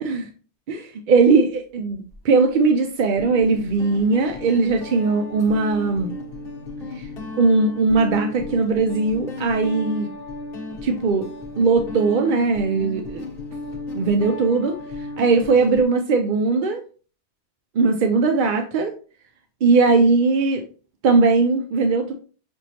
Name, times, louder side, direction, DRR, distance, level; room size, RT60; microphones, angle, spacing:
voice 1, 1.1-6.1 6.9-7.1 7.4-10.1 10.8-11.3 11.6-13.2 13.9-16.8 17.7-18.9 19.6-20.6 21.0-22.1, right 4 dB, 60° right, 5 dB, 0.6 m, -19 dB
Guitar, 1.9-2.2 3.2-15.8, left 2 dB, 60° left, 1.1 m, -34 dB
6.2 x 3.0 x 2.8 m, 0.39 s
omnidirectional pair, 1.2 m